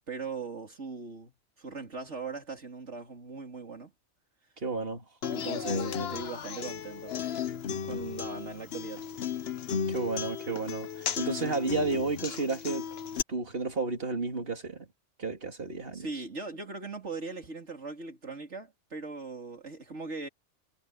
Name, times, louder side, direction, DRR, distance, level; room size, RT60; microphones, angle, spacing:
voice 1, 0.0-1.3 1.6-3.9 5.3-7.3 7.8-9.1 15.9-20.3, right 4 dB, 65° right, 3.7 m, -39 dB
voice 2, 4.6-5.0 9.9-12.9 13.3-14.9 15.2-16.0, right 3 dB, 50° right, 2.8 m, -32 dB
Human voice / Acoustic guitar, 5.2-13.2, left 7 dB, 60° left, 1.1 m, -34 dB
omnidirectional pair, 1.3 m